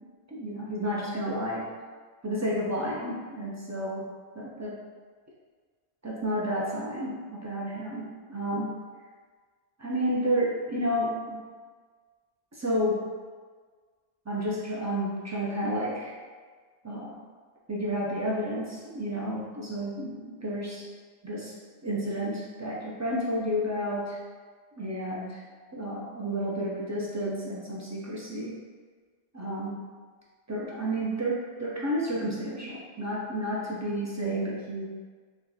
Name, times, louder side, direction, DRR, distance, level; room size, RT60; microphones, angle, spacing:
voice 1, 0.3-1.7 2.2-4.0 4.3-4.8 6.0-8.8 9.8-11.4 12.5-13.0 14.3-16.1 16.8-17.0 17.7-20.8 21.2-21.5 21.8-24.2 24.8-25.4 25.7-28.5 29.3-29.8 30.5-34.9, equal, 25° right, -5 dB, 0.3 m, -31 dB
3.6 x 2.3 x 4.0 m, 1.5 s
omnidirectional pair, 1.2 m